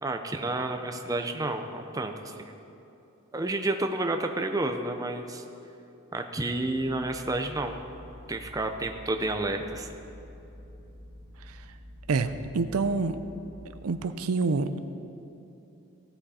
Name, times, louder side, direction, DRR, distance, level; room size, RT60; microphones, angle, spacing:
voice 1, 0.0-2.5 3.3-5.4 6.1-7.8 8.3-9.9, right 2 dB, 15° right, 5 dB, 0.5 m, -30 dB
sound 1, 6.8-13.6, equal, 55° right, 1.7 m, -48 dB
voice 2, 12.1-13.2 13.8-14.8, right 4 dB, 90° right, 10 dB, 0.5 m, -27 dB
16.5 x 7.9 x 4.2 m, 2.9 s
head